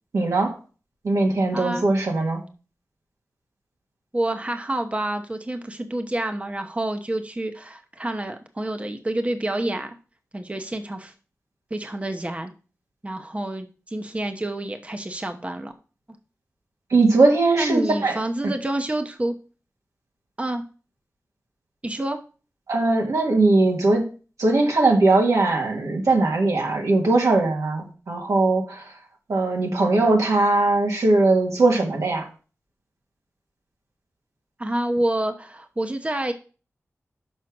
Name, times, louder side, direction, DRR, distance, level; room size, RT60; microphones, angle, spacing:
voice 1, 0.1-0.5 1.0-2.4 16.9-18.2 22.7-24.0 24.4-28.9 29.3-32.3, right 2 dB, 85° right, 0 dB, 2.0 m, -20 dB
voice 2, 1.5-1.9 4.1-9.9 10.3-11.1 11.7-12.5 13.0-15.7 17.6-19.3 20.4-20.6 21.8-22.2 34.6-36.3, right 1 dB, 25° right, 6 dB, 0.9 m, -28 dB
6.3 x 4.9 x 6.0 m, 0.36 s
cardioid pair, 45°, 5 cm